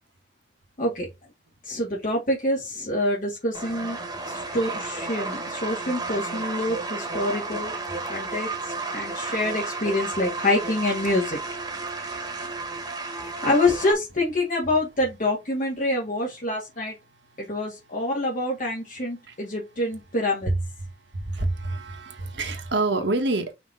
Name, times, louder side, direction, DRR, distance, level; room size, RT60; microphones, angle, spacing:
voice 1, 1.6-4.0 4.3-7.7 8.1-11.4 11.9-12.2 13.4-16.9 17.4-20.5, left 1 dB, 50° left, 1.9 m, -26 dB
sound 1, 3.5-13.9, right 3 dB, 20° right, 1.3 m, -32 dB
voice 2, 21.1-23.5, right 2 dB, 90° right, 1.4 m, -27 dB
5.7 x 3.0 x 5.5 m
head